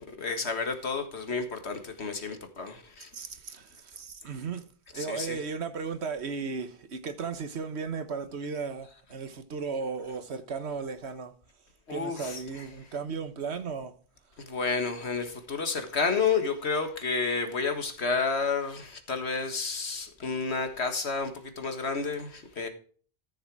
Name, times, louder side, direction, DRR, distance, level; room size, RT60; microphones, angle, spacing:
voice 1, 0.2-3.1 4.9-5.4 11.9-12.6 14.4-22.7, left 4 dB, 90° left, 2.0 m, -30 dB
voice 2, 3.1-4.6 4.9-11.3 11.9-13.9, right 5 dB, 90° right, 1.4 m, -35 dB
13.5 x 6.8 x 4.8 m
omnidirectional pair, 1.1 m